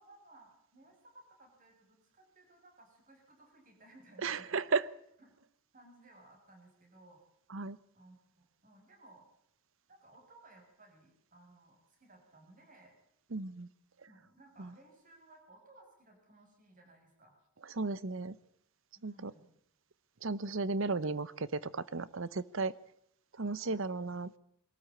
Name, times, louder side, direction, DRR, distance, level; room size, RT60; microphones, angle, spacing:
voice 1, 0.0-4.8 5.2-5.3 5.7-7.2 7.9-9.3 9.9-13.0 14.1-17.3 19.0-19.5 23.5-23.8, right 2 dB, 35° right, 1 dB, 7.1 m, -60 dB
voice 2, 4.2-4.9 7.5-7.8 13.3-13.7 14.6-14.7 17.7-18.3 19.0-19.3 20.2-22.7 23.4-24.4, right 3 dB, 60° right, 18 dB, 0.8 m, -34 dB
23.0 x 13.5 x 8.7 m, 0.73 s
head